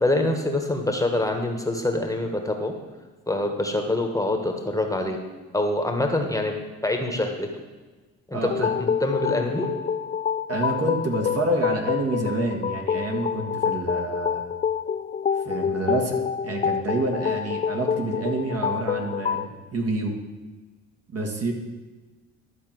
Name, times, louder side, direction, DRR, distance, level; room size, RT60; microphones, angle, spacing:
voice 1, 0.0-2.7 3.3-5.2 5.5-6.5 6.8-7.5 8.3-9.7, left 2 dB, 10° left, 3 dB, 1.3 m, -25 dB
voice 2, 8.3-8.7 10.5-14.4 15.4-16.2 16.4-20.1 21.1-21.5, right 2 dB, 55° right, 2 dB, 1.8 m, -28 dB
sound 1, 8.5-19.5, left 7 dB, 25° left, 0.3 m, -27 dB
12.0 x 4.4 x 7.5 m, 1.3 s
cardioid pair, 90°, 30 cm